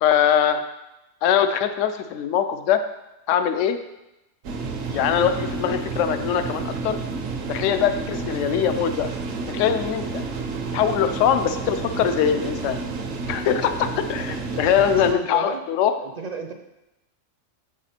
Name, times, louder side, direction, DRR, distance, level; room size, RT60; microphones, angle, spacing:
voice 1, 0.0-0.6 1.2-2.8 3.3-3.8 4.9-7.0 7.5-9.1 9.5-10.2 10.7-12.8 13.3-15.9, left 8 dB, 75° left, 9 dB, 0.9 m, -22 dB
sound 1, 4.4-15.1, right 4 dB, 85° right, 1.1 m, -30 dB
voice 2, 14.8-15.7 16.0-16.5, right 4 dB, 50° right, 5 dB, 0.5 m, -33 dB
7.0 x 4.9 x 4.3 m, 0.94 s
omnidirectional pair, 1.3 m